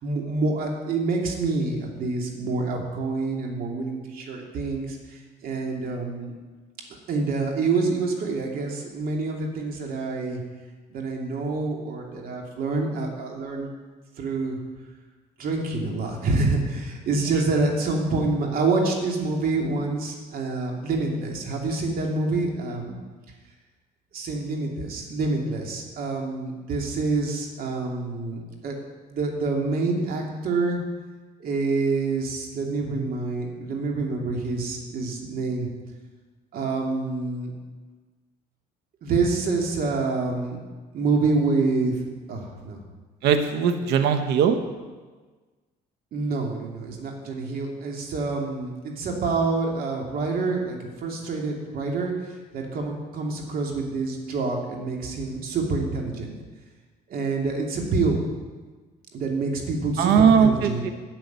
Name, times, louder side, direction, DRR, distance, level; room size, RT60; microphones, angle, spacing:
voice 1, 0.0-6.3 7.1-10.4 10.9-13.7 14.2-14.6 15.4-23.0 24.1-28.8 29.1-30.8 31.4-35.7 36.5-37.5 39.0-40.6 40.9-42.0 42.3-42.8 46.1-56.3 57.1-58.2 59.1-60.9, right 3 dB, 60° right, 1 dB, 2.8 m, -27 dB
voice 2, 43.2-44.6 60.0-60.5 60.8-60.9, right 7 dB, 80° right, 8 dB, 1.0 m, -19 dB
11.5 x 6.4 x 9.4 m, 1.4 s
cardioid pair, 110°, 17 cm